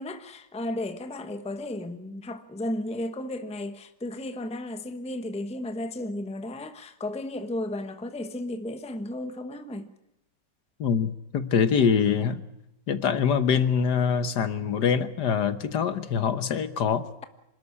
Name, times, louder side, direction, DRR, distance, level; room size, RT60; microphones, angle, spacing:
voice 1, 0.0-9.9, left 1 dB, 5° left, 0.9 m, -34 dB
voice 2, 10.8-12.4 12.9-17.1, left 7 dB, 70° left, 1.7 m, -24 dB
26.0 x 13.0 x 9.8 m
omnidirectional pair, 1.9 m